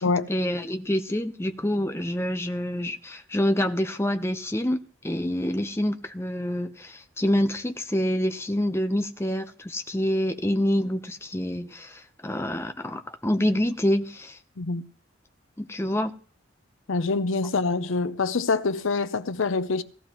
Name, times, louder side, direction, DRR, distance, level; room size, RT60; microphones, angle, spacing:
voice 1, 0.3-14.4 15.6-16.1, left 1 dB, 10° left, 0.7 m, -27 dB
voice 2, 14.6-14.9 16.9-19.8, left 4 dB, 75° left, 0.7 m, -25 dB
17.5 x 13.5 x 3.0 m
head